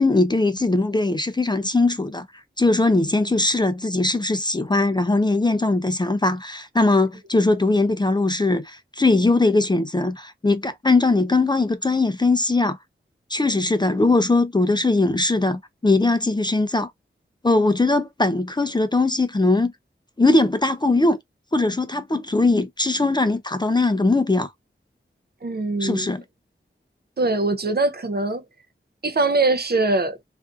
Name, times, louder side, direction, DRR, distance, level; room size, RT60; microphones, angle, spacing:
voice 1, 0.0-2.3 2.6-12.8 13.3-16.9 17.4-19.7 20.2-21.2 21.5-24.5 25.8-26.2, left 2 dB, 20° left, 0.4 m, -20 dB
voice 2, 25.4-26.1 27.2-28.4 29.0-30.2, right 2 dB, 50° right, 0.5 m, -22 dB
2.5 x 2.4 x 2.3 m
wide cardioid pair, 50°, 21 cm